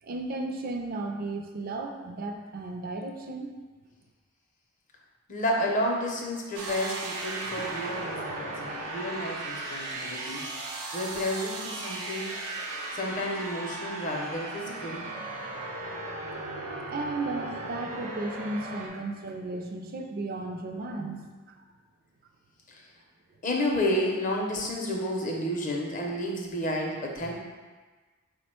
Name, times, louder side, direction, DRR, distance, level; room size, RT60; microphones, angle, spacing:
voice 1, 0.0-3.5 16.9-21.3 27.2-27.3, right 2 dB, 40° right, 3 dB, 0.4 m, -34 dB
voice 2, 5.3-10.4 10.9-12.3 12.9-15.1 22.7-22.9 23.4-27.3, left 1 dB, 35° left, -1 dB, 0.5 m, -31 dB
sound 1, 6.5-18.9, right 2 dB, 90° right, 0.6 m, -36 dB
4.8 x 2.1 x 4.3 m, 1.3 s
head